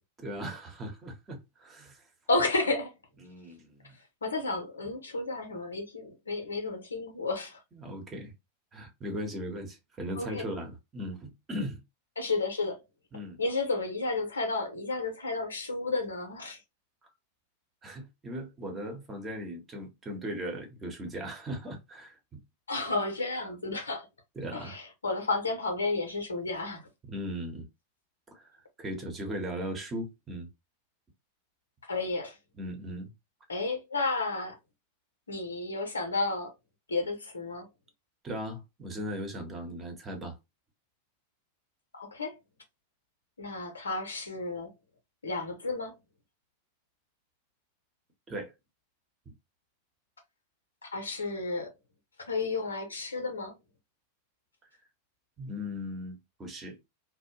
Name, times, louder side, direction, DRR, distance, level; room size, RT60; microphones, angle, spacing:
voice 1, 0.2-2.0 3.2-4.0 7.7-8.3 8.7-11.8 13.1-13.4 17.8-22.4 24.4-24.8 27.1-27.7 28.3-28.5 28.8-30.5 32.5-33.1 38.2-40.4 48.3-48.5 55.4-56.8, equal, 20° right, 0.9 m, -38 dB
voice 2, 2.3-2.9 4.2-7.6 10.2-10.4 12.2-12.8 13.4-16.6 22.7-24.1 24.5-26.8 31.9-32.4 33.5-34.6 35.3-36.5 36.9-37.7 41.9-42.4 43.4-44.7 45.2-45.9 50.8-51.7 52.3-53.5, left 3 dB, 75° left, 0.8 m, -32 dB
2.5 x 2.1 x 2.8 m
figure-of-eight pair, 90°, 0 cm